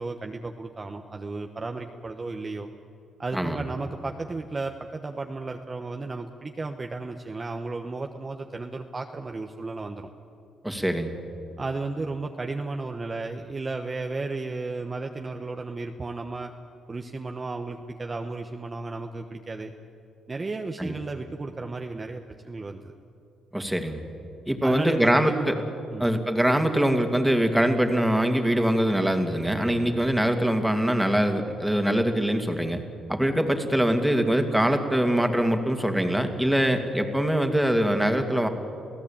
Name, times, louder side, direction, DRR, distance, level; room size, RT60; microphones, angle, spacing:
voice 1, 0.0-2.7 3.2-10.1 11.6-16.5 16.9-19.7 20.3-22.9 24.6-25.5 25.9-26.1, right 3 dB, 30° right, 4 dB, 1.1 m, -34 dB
voice 2, 3.3-3.6 10.6-11.2 20.8-20.9 23.5-24.0 24.5-25.5 26.0-32.8 33.1-38.5, right 1 dB, 5° right, 5 dB, 2.5 m, -23 dB
28.5 x 16.5 x 8.8 m, 2.6 s
cardioid pair, 90°, 0 cm